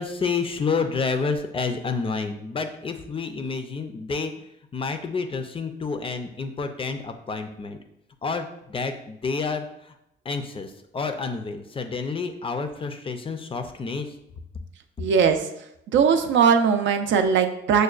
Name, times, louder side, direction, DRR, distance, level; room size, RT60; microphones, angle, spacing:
voice 1, 0.0-4.3 4.7-7.8 8.2-9.7 10.3-14.1, left 4 dB, 30° left, 6 dB, 0.4 m, -29 dB
voice 2, 15.0-15.5 15.9-17.8, right 6 dB, 70° right, 7 dB, 0.4 m, -20 dB
6.3 x 2.2 x 2.4 m, 0.80 s
cardioid pair, 90°, 20 cm